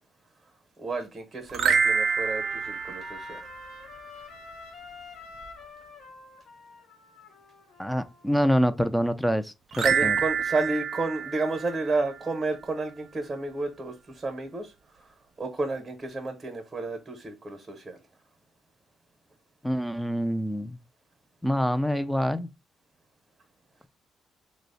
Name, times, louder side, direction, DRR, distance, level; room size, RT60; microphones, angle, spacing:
voice 1, 0.8-3.4 9.8-14.7 15.0-15.1 15.4-18.0, right 3 dB, 30° right, 0.7 m, -31 dB
sound 1, 1.5-4.0 9.7-12.3, right 6 dB, 65° right, 0.4 m, -27 dB
Trumpet, 1.6-8.3, left 4 dB, 80° left, 0.7 m, -47 dB
voice 2, 7.8-10.2 19.6-20.8 21.4-22.5, equal, ahead, 0.3 m, -26 dB
2.9 x 2.0 x 4.0 m
cardioid pair, 90°, 0 cm